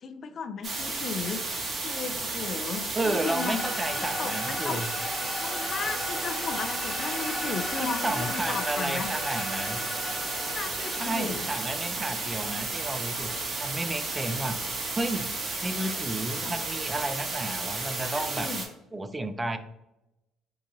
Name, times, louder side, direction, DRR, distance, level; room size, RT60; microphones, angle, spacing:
voice 1, 0.0-3.6 4.0-4.8 5.4-9.1 10.4-11.5 16.4-16.6 18.0-18.6, left 5 dB, 50° left, 9 dB, 0.3 m, -36 dB
sound 1, 0.6-18.7, right 3 dB, 45° right, 1.0 m, -33 dB
voice 2, 2.9-4.9 7.5-9.8 10.9-13.3 13.6-14.6 14.9-15.3 15.6-18.5 18.9-19.6, right 2 dB, 20° right, 9 dB, 0.4 m, -32 dB
sound 2, 3.0-13.5, left 2 dB, 15° left, 0.9 m, -37 dB
4.7 x 2.6 x 2.5 m, 0.90 s
hypercardioid pair, 65°, 0 cm